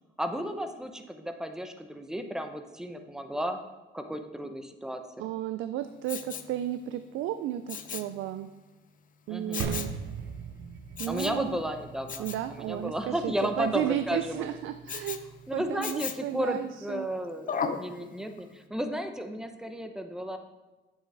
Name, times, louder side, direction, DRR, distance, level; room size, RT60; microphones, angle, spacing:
voice 1, 0.2-3.6 3.9-5.3 9.3-9.7 11.1-14.5 15.0-15.1 15.5-20.4, equal, 5° right, 6 dB, 0.8 m, -33 dB
voice 2, 5.2-8.5 9.3-9.9 11.0-11.6 12.2-15.2 15.5-17.1, right 12 dB, 85° right, 10 dB, 0.4 m, -33 dB
Respiratory sounds, 6.1-6.5 7.7-8.1 9.5-10.0 11.0-11.4 12.1-12.4 14.9-15.2 15.8-16.3 17.5-17.9 18.4-18.5, left 6 dB, 45° left, 0.6 m, -35 dB
sound 1, 9.6-15.7, right 6 dB, 70° right, 0.8 m, -41 dB
8.6 x 7.2 x 3.4 m, 1.2 s
cardioid pair, 90°, 20 cm